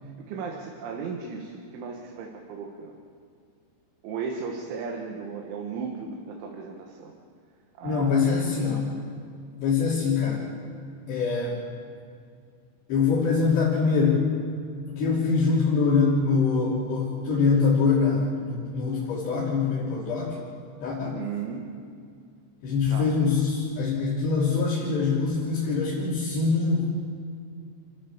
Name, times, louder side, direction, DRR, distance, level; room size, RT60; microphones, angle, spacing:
voice 1, 0.0-3.0 4.0-7.1 7.8-8.2 21.0-21.7 22.9-23.1, right 5 dB, 85° right, 1 dB, 4.0 m, -35 dB
voice 2, 7.8-8.9 9.6-10.4 11.1-11.6 12.9-14.3 14.9-20.3 20.8-21.2 22.6-27.1, left 4 dB, 65° left, -8 dB, 5.1 m, -24 dB
29.5 x 14.0 x 7.3 m, 2.3 s
omnidirectional pair, 5.3 m